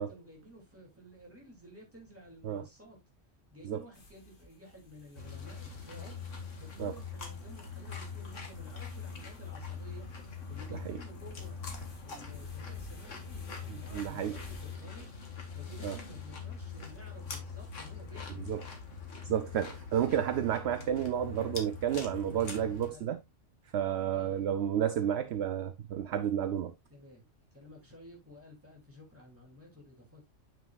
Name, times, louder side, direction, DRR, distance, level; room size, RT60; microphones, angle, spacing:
voice 1, 0.0-3.0 3.5-6.2 6.6-10.1 10.5-11.6 12.0-15.1 15.5-18.6 22.2-23.1 23.9-24.7 26.9-30.3, equal, 10° right, 2.9 m, -53 dB
sound 1, 3.9-14.8, equal, 45° left, 1.6 m, -55 dB
sound 2, 5.2-22.9, left 5 dB, 80° left, 2.0 m, -43 dB
voice 2, 13.7-14.4 15.8-15.9 18.5-18.6 19.2-23.2 23.7-26.7, right 9 dB, 65° right, 0.8 m, -31 dB
8.9 x 6.4 x 2.4 m
omnidirectional pair, 1.3 m